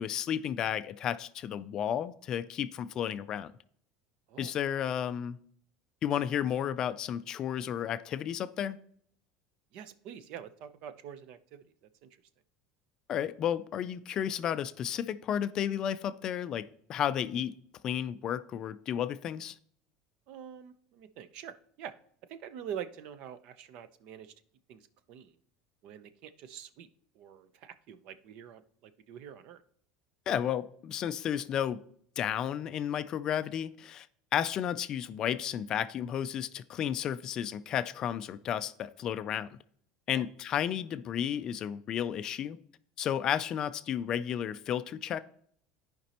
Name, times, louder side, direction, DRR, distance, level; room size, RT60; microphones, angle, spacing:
voice 1, 0.0-3.5 4.4-5.4 6.0-8.8 13.1-17.5 17.8-19.6 30.3-31.8 32.2-34.1 34.3-39.6 40.1-42.6 43.0-45.2, left 9 dB, 30° left, 0.3 m, -32 dB
voice 2, 9.7-11.6 12.0-12.1 20.3-21.9 22.3-24.3 24.7-25.3 25.8-26.9 27.2-29.6 40.1-40.2, right 9 dB, 45° right, 0.6 m, -45 dB
14.0 x 5.2 x 2.9 m
cardioid pair, 170°, 2 cm